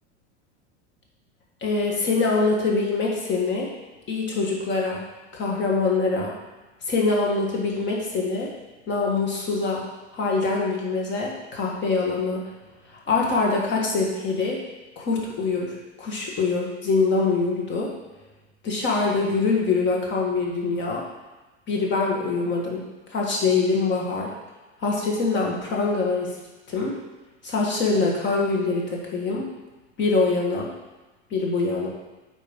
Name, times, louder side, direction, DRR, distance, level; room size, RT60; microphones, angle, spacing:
voice 1, 1.6-3.7 4.1-5.0 5.3-6.3 6.8-8.5 8.9-9.8 10.1-12.4 13.1-14.6 15.0-17.9 18.6-21.0 21.7-22.8 23.1-24.3 24.8-26.4 26.7-26.9 27.4-29.5 30.0-30.7 31.3-31.9, left 3 dB, 30° left, -2 dB, 1.6 m, -24 dB
8.3 x 3.0 x 5.2 m, 1.2 s
figure-of-eight pair, 80°, 36 cm